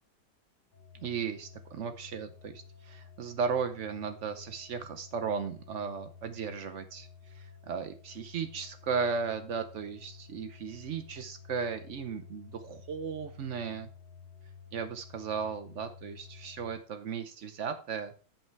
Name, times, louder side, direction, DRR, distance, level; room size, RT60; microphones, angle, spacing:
sound 1, 0.7-16.8, left 6 dB, 85° left, 2.1 m, -52 dB
voice 1, 0.9-7.1 7.3-13.9 14.7-18.1, right 6 dB, 85° right, 9 dB, 0.6 m, -36 dB
10.5 x 5.6 x 4.6 m, 0.37 s
omnidirectional pair, 2.3 m